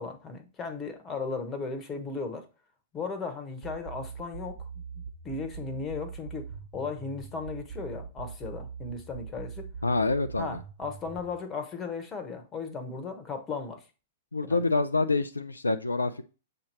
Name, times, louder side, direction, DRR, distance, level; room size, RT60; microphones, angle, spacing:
voice 1, 0.0-2.5 2.9-4.6 5.2-6.5 6.7-9.7 10.4-13.8 14.4-14.7, left 4 dB, 20° left, 1.1 m, -36 dB
sound 1, 3.6-11.3, right 6 dB, 45° right, 0.9 m, -41 dB
voice 2, 9.8-10.6 14.3-16.2, left 3 dB, 80° left, 0.4 m, -26 dB
7.3 x 2.9 x 4.3 m
figure-of-eight pair, 105°, 0 cm